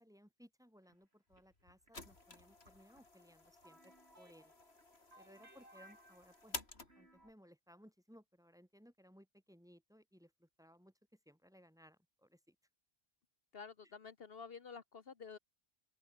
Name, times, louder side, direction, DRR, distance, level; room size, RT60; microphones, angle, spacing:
voice 1, 0.0-4.5 5.2-6.6 6.9-10.9 11.3-12.5 13.8-13.9, equal, 5° right, 5.0 m, -63 dB
sound 1, 0.9-7.3, right 1 dB, 80° right, 7.9 m, -64 dB
sound 2, 1.3-7.3, left 3 dB, 80° left, 3.4 m, -53 dB
voice 2, 13.5-15.4, left 5 dB, 65° left, 1.4 m, -51 dB
open air
omnidirectional pair, 1.1 m